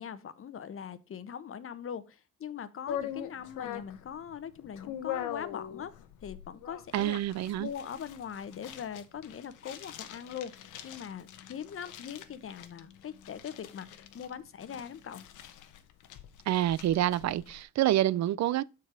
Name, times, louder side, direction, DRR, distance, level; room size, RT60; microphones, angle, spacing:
voice 1, 0.0-5.9 6.2-7.2 7.6-15.3, left 8 dB, 45° left, 0.9 m, -41 dB
sound 1, 2.9-17.6, left 10 dB, 80° left, 1.0 m, -43 dB
voice 2, 6.9-7.7 16.5-18.6, right 13 dB, 65° right, 0.5 m, -27 dB
6.3 x 4.8 x 4.9 m
cardioid pair, 90°, 30 cm